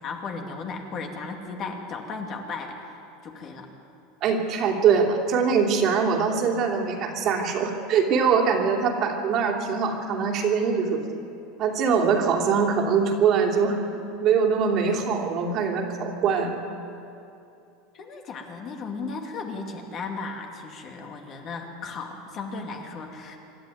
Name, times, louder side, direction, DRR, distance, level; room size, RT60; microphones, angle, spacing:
voice 1, 0.0-3.0 3.2-3.7 17.9-23.4, left 4 dB, 35° left, 2 dB, 2.4 m, -35 dB
voice 2, 4.2-11.0 11.6-13.8 14.2-16.6, right 6 dB, 40° right, 1 dB, 2.9 m, -23 dB
26.0 x 12.5 x 9.3 m, 2.8 s
supercardioid pair, 150°, 0 cm